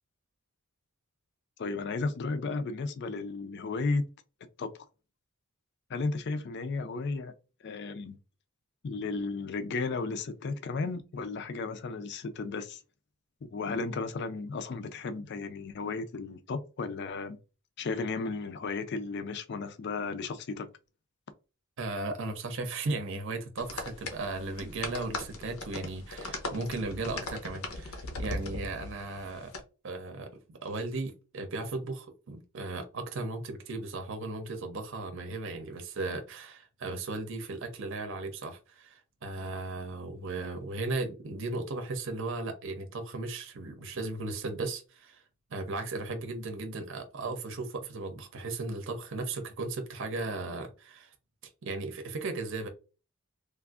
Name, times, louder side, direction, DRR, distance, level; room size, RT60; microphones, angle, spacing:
voice 1, 1.6-4.0 4.6-4.7 5.9-7.3 7.6-8.2 8.8-12.8 13.4-17.4 17.8-20.7, left 3 dB, 50° left, 0.4 m, -34 dB
voice 2, 21.8-29.5 29.8-45.2 45.5-51.1 51.6-52.7, right 3 dB, 60° right, 0.6 m, -36 dB
sound 1, 23.6-29.6, left 2 dB, 80° left, 0.8 m, -39 dB
3.4 x 2.5 x 2.4 m
head